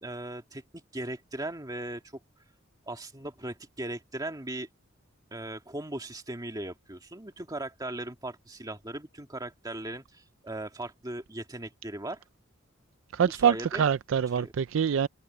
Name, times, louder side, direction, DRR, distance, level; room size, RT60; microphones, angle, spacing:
voice 1, 0.0-0.6 0.9-2.0 2.9-4.7 5.3-12.2 13.4-13.8 14.4-14.5, right 1 dB, 20° right, 1.9 m, -38 dB
voice 2, 13.1-15.1, right 7 dB, 70° right, 0.4 m, -25 dB
head